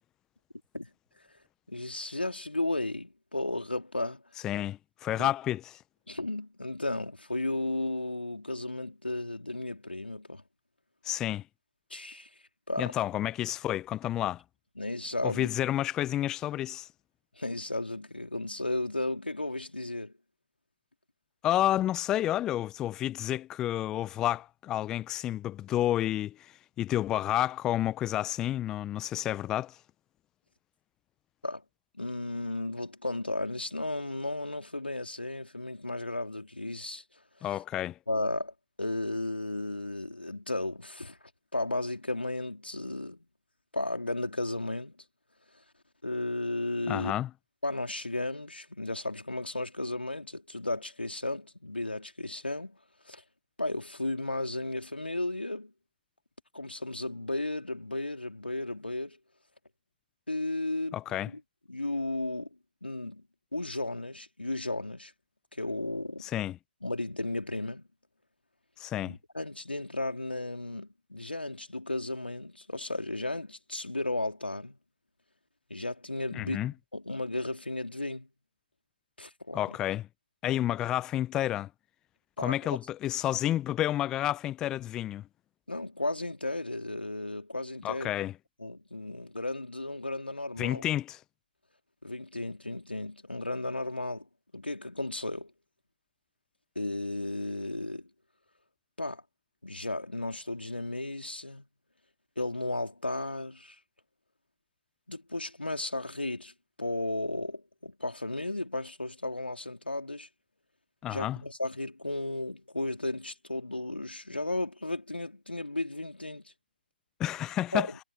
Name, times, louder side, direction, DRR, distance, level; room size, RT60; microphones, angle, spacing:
voice 1, 1.7-4.2 5.2-5.3 6.1-10.4 11.9-12.3 12.7-12.9 14.8-15.5 17.3-20.1 31.4-31.6 31.9-37.0 37.4-37.6 38.1-41.2 41.5-43.3 43.7-45.0 45.5-45.6 46.0-47.1 47.6-52.8 53.0-53.2 53.6-55.7 56.5-59.2 60.3-61.0 61.3-61.4 61.7-62.5 62.8-63.3 63.5-65.1 65.5-66.3 66.8-67.8 69.0-74.8 75.7-76.6 76.9-78.3 79.2-79.8 82.4-82.6 85.7-88.3 88.6-90.8 92.0-94.3 94.5-95.5 96.8-98.1 99.0-99.2 99.6-101.7 102.4-103.8 105.1-106.5 106.8-110.3 111.1-116.5 117.7-118.0, left 2 dB, 80° left, 3.8 m, -34 dB
voice 2, 4.4-5.6 11.0-11.4 12.8-14.4 15.2-16.9 21.4-29.8 37.4-38.0 46.9-47.3 60.9-61.3 66.2-66.6 68.8-69.2 76.4-76.7 79.5-80.1 80.4-81.7 82.4-85.2 87.8-88.3 90.6-91.2 111.0-111.4 117.2-117.9, left 13 dB, 10° left, 0.8 m, -30 dB
figure-of-eight pair, 145°, 6 cm